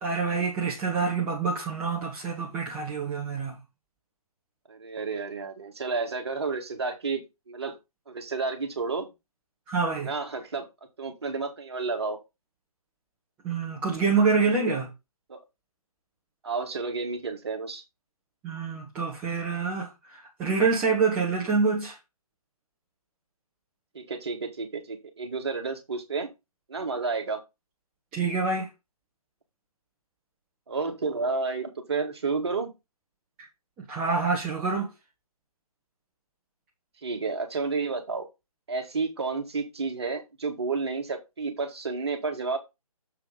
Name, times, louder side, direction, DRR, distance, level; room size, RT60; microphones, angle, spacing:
voice 1, 0.0-3.6 9.7-10.1 13.4-14.9 18.4-21.9 28.1-28.7 33.9-34.9, right 4 dB, 5° right, 0.7 m, -26 dB
voice 2, 4.7-7.8 8.1-9.1 10.0-10.7 11.0-12.2 15.3-15.4 16.4-17.8 23.9-26.3 26.7-27.4 30.7-32.7 37.0-38.3 38.7-42.6, right 4 dB, 45° right, 1.9 m, -31 dB
7.1 x 5.6 x 3.9 m
figure-of-eight pair, 145°, 19 cm